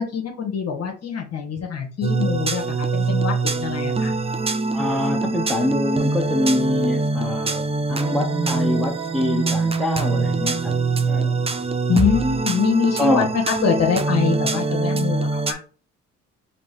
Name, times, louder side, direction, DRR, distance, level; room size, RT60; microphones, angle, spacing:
voice 1, 0.0-4.1 11.9-15.6, left 6 dB, 55° left, 1.2 m, -24 dB
sound 1, 2.0-15.5, right 3 dB, 20° right, 0.7 m, -23 dB
voice 2, 4.7-10.8 11.0-11.4 13.0-13.3, left 1 dB, ahead, 0.9 m, -25 dB
5.1 x 2.8 x 3.3 m
cardioid pair, 90°, 30 cm